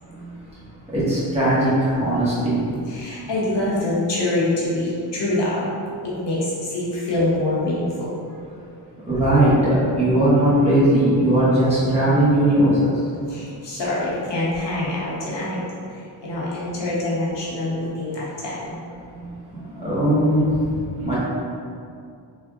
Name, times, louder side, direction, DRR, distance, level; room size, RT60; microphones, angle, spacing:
voice 1, 0.9-2.7 9.1-12.9 19.7-20.4 21.0-21.1, right 1 dB, 15° right, -11 dB, 1.5 m, -18 dB
voice 2, 2.9-5.7 6.0-8.1 13.3-15.6 15.9-18.8, left 1 dB, 70° left, -7 dB, 1.0 m, -25 dB
3.5 x 3.3 x 2.4 m, 2.4 s
cardioid pair, 85°, 44 cm